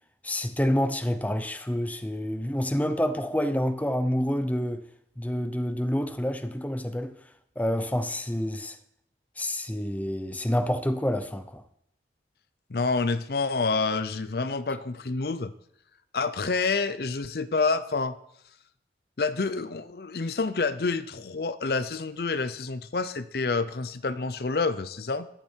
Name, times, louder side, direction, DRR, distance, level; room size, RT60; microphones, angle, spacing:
voice 1, 0.2-4.9 5.2-7.2 7.6-8.8 9.4-11.6, equal, 10° left, 0.7 m, -28 dB
voice 2, 12.7-15.5 16.1-18.1 19.2-25.3, left 4 dB, 60° left, 0.6 m, -28 dB
14.0 x 12.0 x 4.5 m
head